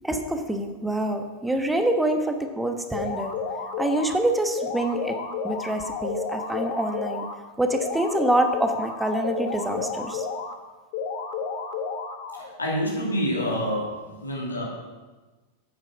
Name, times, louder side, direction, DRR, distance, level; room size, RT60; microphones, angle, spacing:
voice 1, 0.0-3.3 3.8-5.2 5.4-7.3 7.6-10.2, right 1 dB, 5° right, 6 dB, 1.1 m, -26 dB
sound 1, 2.9-4.1 4.5-7.3 7.7-10.5 10.9-12.5, left 5 dB, 50° left, 1.2 m, -31 dB
voice 2, 12.4-14.6, equal, 80° left, -3 dB, 2.5 m, -28 dB
9.4 x 8.8 x 5.8 m, 1.2 s
figure-of-eight pair, 90°, 0 cm